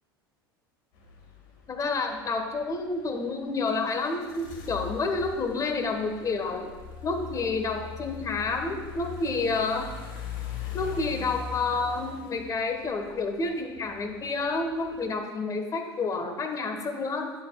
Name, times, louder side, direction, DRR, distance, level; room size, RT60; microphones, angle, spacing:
sound 1, 0.9-15.2, left 7 dB, 60° left, 2.0 m, -42 dB
voice 1, 1.7-6.7 7.0-9.9 10.7-17.3, left 3 dB, 25° left, 4 dB, 1.4 m, -29 dB
11.0 x 9.7 x 2.4 m, 1.3 s
hypercardioid pair, 80°, 12 cm